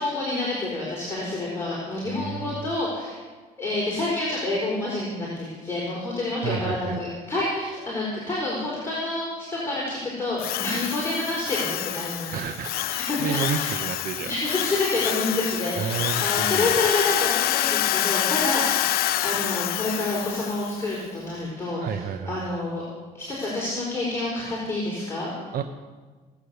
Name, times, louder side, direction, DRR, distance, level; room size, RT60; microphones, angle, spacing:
voice 1, 0.0-3.2 3.6-12.4 13.1-13.7 14.2-22.8 23.1-25.5, left 2 dB, 15° left, -6 dB, 4.2 m, -28 dB
voice 2, 2.1-2.7 6.4-7.0 12.3-12.7 13.2-14.3 14.7-15.1 15.8-16.7 21.8-22.4 25.5-25.6, right 8 dB, 60° right, 7 dB, 0.7 m, -31 dB
Drill, 10.4-20.8, left 14 dB, 65° left, 0.5 m, -27 dB
17.5 x 8.3 x 6.8 m, 1.4 s
cardioid pair, 110°, 17 cm